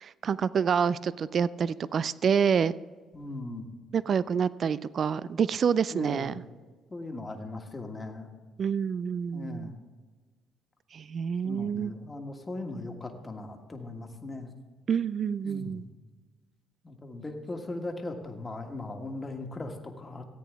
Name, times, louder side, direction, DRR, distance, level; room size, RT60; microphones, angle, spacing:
voice 1, 0.0-2.7 3.9-6.3 8.6-9.7 10.9-11.9 14.9-15.8, right 7 dB, 50° right, 18 dB, 0.3 m, -27 dB
voice 2, 3.1-3.7 5.9-6.4 6.9-8.3 9.3-9.8 11.4-14.5 15.4-15.9 16.8-20.2, left 2 dB, 25° left, 3 dB, 1.5 m, -39 dB
14.5 x 8.4 x 3.5 m, 1.4 s
supercardioid pair, 65°, 0 cm